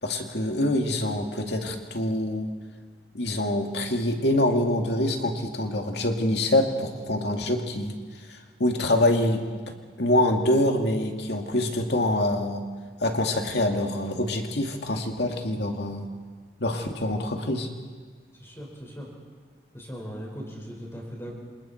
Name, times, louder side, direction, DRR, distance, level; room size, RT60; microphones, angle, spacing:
voice 1, 0.0-2.5 3.1-7.9 8.3-12.6 13.0-16.1 16.6-17.7, left 1 dB, 60° left, 3 dB, 2.3 m, -25 dB
voice 2, 18.4-19.1 19.7-21.3, equal, 15° left, -2 dB, 5.4 m, -39 dB
27.5 x 27.5 x 4.5 m, 1.5 s
head